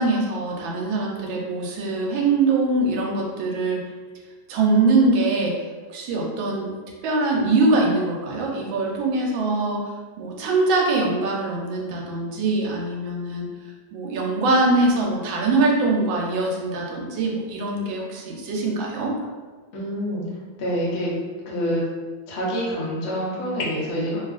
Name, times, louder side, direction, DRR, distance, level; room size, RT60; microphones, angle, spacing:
voice 1, 0.0-3.8 4.5-5.6 5.9-6.7 7.0-9.8 10.2-13.5 13.9-19.2, right 3 dB, 90° right, -1 dB, 1.3 m, -22 dB
voice 2, 19.7-20.2 20.6-21.1 21.4-21.8 22.3-24.2, equal, 55° left, -6 dB, 0.8 m, -26 dB
3.1 x 2.4 x 2.4 m, 1.4 s
omnidirectional pair, 2.0 m